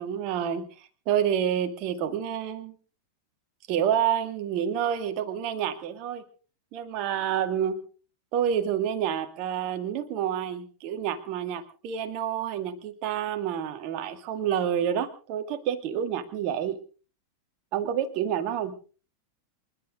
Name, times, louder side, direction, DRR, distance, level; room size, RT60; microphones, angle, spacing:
voice 1, 0.0-2.7 3.7-6.2 6.7-7.8 8.3-16.8 17.7-18.8, right 9 dB, 40° right, 9 dB, 2.2 m, -28 dB
28.0 x 11.5 x 3.8 m, 0.39 s
figure-of-eight pair, 90°, 0 cm